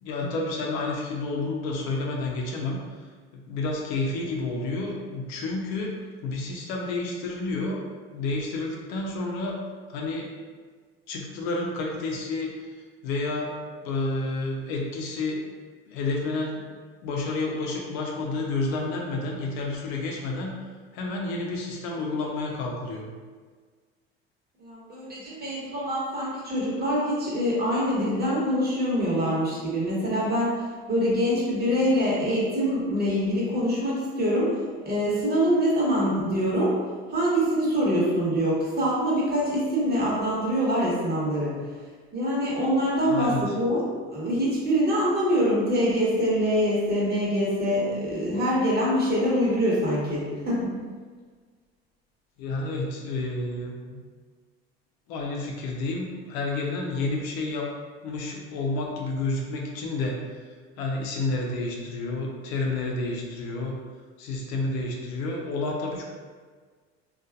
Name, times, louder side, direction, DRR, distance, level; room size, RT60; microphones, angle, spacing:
voice 1, 0.0-3.0 3.3-9.6 9.9-10.3 11.1-12.5 13.0-13.5 13.8-15.4 15.9-16.6 17.0-20.6 20.9-23.1 43.0-43.4 52.4-54.0 55.1-57.7 58.0-60.2 60.8-63.8 64.2-66.0, left 2 dB, 75° left, -1 dB, 0.6 m, -30 dB
voice 2, 24.6-30.5 30.9-34.5 34.8-36.8 37.1-41.5 42.1-43.8 44.1-50.8, equal, 30° right, -6 dB, 1.1 m, -24 dB
2.6 x 2.4 x 2.2 m, 1.5 s
hypercardioid pair, 75°, 31 cm